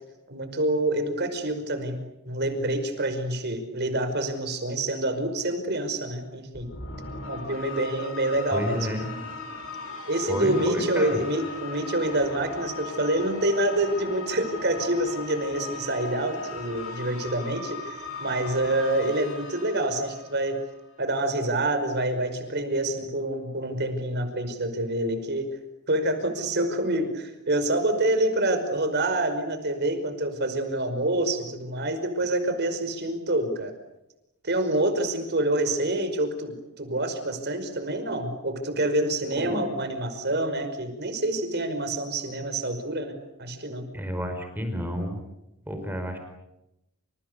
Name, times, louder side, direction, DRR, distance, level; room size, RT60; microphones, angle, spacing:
voice 1, 0.3-6.7 7.3-9.0 10.1-20.6 21.0-25.5 25.9-33.7 34.4-43.1 43.4-43.9, right 1 dB, 50° right, 8 dB, 5.4 m, -27 dB
sound 1, 6.5-20.9, left 3 dB, 70° left, 7.9 m, -38 dB
voice 2, 8.5-9.1 10.3-11.2 39.4-39.6 43.9-45.2 45.7-46.2, equal, 10° right, 5 dB, 4.8 m, -30 dB
29.0 x 28.5 x 6.9 m, 0.91 s
head